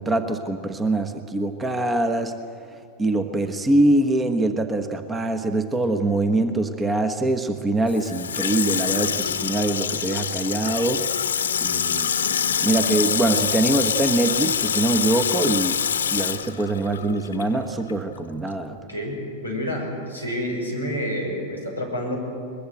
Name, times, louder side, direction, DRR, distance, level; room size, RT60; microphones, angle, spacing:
voice 1, 0.0-2.3 3.0-11.0 11.6-12.1 12.6-15.8 16.1-18.8, right 2 dB, 15° right, 8 dB, 1.2 m, -23 dB
Water tap faucet / Sink (filling or washing), 7.9-17.6 17.9-18.0, left 8 dB, 65° left, 1.0 m, -25 dB
voice 2, 18.7-22.2, equal, 90° right, 0 dB, 5.8 m, -29 dB
22.0 x 21.5 x 7.9 m, 2.4 s
figure-of-eight pair, 90°, 0 cm